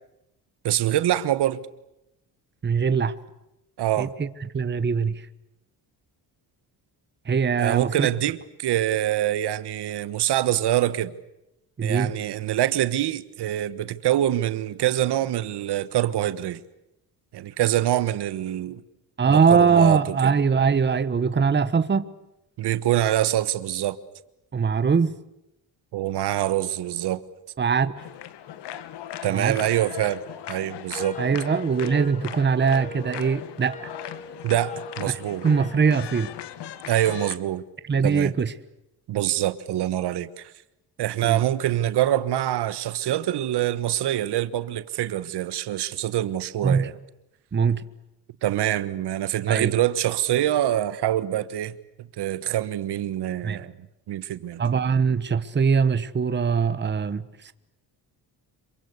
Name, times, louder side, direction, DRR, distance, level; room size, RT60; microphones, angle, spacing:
voice 1, 0.6-1.6 3.8-4.1 7.6-11.1 11.8-16.6 17.3-18.8 19.3-20.3 22.6-24.0 25.9-27.2 29.2-30.2 30.5-31.2 34.4-35.4 36.9-37.6 38.0-38.3 39.1-40.5 41.0-46.9 48.4-53.7 54.1-54.6, right 13 dB, 75° right, 1.4 m, -25 dB
voice 2, 2.6-3.1 4.0-5.3 7.2-8.1 11.8-12.1 19.2-22.1 24.5-25.2 27.6-28.0 29.3-29.6 31.2-33.8 35.1-36.3 37.8-38.5 41.2-41.4 46.6-46.9 47.5-47.8 49.5-49.7 53.4-53.6 54.6-57.5, right 6 dB, 25° right, 1.2 m, -22 dB
sound 1, 28.0-37.4, left 11 dB, 80° left, 1.9 m, -38 dB
sound 2, 30.9-35.9, left 2 dB, 20° left, 0.9 m, -40 dB
27.0 x 24.0 x 8.3 m
cardioid pair, 115°, 41 cm